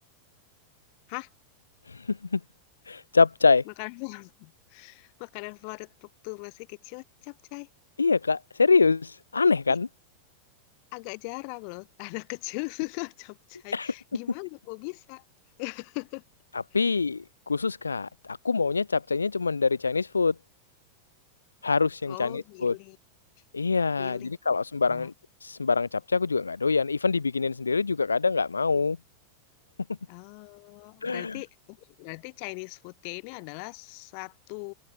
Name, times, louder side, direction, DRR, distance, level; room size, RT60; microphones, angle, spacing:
voice 1, 1.9-2.4 2.9-3.6 8.0-9.9 13.7-13.9 16.7-20.3 21.6-22.7 23.5-25.1 25.4-29.0 31.0-31.4, left 4 dB, 75° left, 0.3 m, -25 dB
voice 2, 3.7-7.7 9.7-9.8 10.9-15.2 15.6-16.2 16.7-16.8 22.1-23.0 24.0-24.5 24.9-25.1 30.1-34.7, left 40 dB or more, 45° left, 2.4 m, -39 dB
open air
figure-of-eight pair, 90°, 0 cm